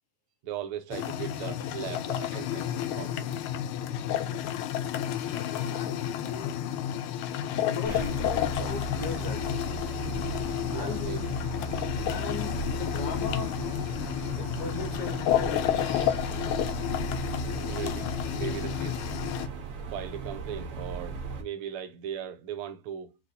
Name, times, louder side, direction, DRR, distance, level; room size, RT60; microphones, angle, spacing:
voice 1, 0.4-2.7 3.0-3.3 10.7-11.2 17.6-19.1 19.9-23.2, right 9 dB, 85° right, 1.6 m, -38 dB
sound 1, 0.9-19.5, left 10 dB, 80° left, 1.4 m, -31 dB
voice 2, 5.4-6.6 7.6-9.6 10.7-11.3 12.1-13.6 14.3-16.1, left 5 dB, 65° left, 1.4 m, -38 dB
sound 2, 7.8-21.4, right 3 dB, 60° right, 0.8 m, -36 dB
4.4 x 2.2 x 2.5 m
omnidirectional pair, 2.4 m